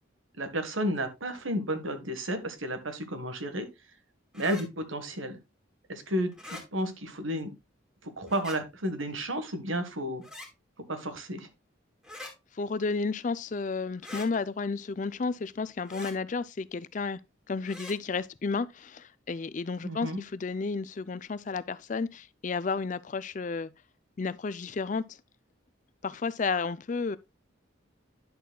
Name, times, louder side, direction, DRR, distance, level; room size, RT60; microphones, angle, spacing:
voice 1, 0.4-3.7 4.3-5.4 5.9-7.5 8.0-10.2 10.9-11.5 19.8-20.2, right 1 dB, 85° right, 1.5 m, -32 dB
sound 1, 4.3-4.7 6.3-6.7 8.3-8.6 10.2-10.5 12.0-12.3 14.0-14.3 15.9-16.2 17.7-18.0, left 2 dB, 5° right, 2.1 m, -43 dB
voice 2, 12.2-17.2 17.5-23.7 24.2-25.2 26.0-27.2, left 4 dB, 40° left, 0.4 m, -32 dB
10.0 x 6.8 x 2.2 m
head